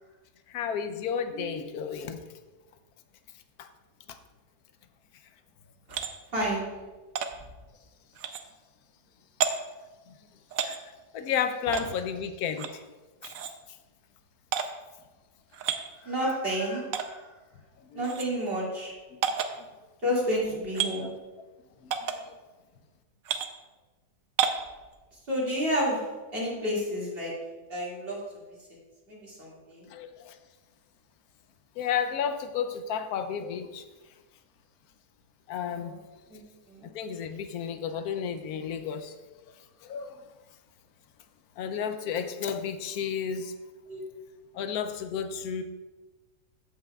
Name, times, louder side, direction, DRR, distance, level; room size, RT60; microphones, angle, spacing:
voice 1, 0.5-2.2 3.6-3.7 10.6-10.8 11.1-12.7 17.9-18.0 19.6-19.7 21.0-21.1 21.8-22.3 29.9-30.3 31.8-33.8 35.5-35.9 36.9-39.1 39.8-40.2 41.6-43.5 44.5-45.6, left 7 dB, 75° left, 9 dB, 1.0 m, -32 dB
voice 2, 1.3-1.7 6.3-6.7 16.0-17.3 17.9-18.9 20.0-21.1 25.3-26.0 26.3-27.3 27.7-28.2 29.1-29.8 35.7-36.0 36.3-36.4 36.7-36.9 43.9-44.0, equal, 35° right, -5 dB, 2.3 m, -30 dB
sound 1, 5.9-6.1 7.2-7.3 8.2-8.4 9.4-9.5 10.5-10.8 11.7-11.9 12.6-12.8 13.2-13.5 14.5-14.7 15.5-15.8 16.9-17.1 18.0-18.3 19.2-19.5 20.7-20.9 21.9-22.2 23.2-23.5 24.4-24.6, right 8 dB, 70° right, 0.9 m, -29 dB
15.0 x 5.6 x 2.3 m, 1.2 s
omnidirectional pair, 1.7 m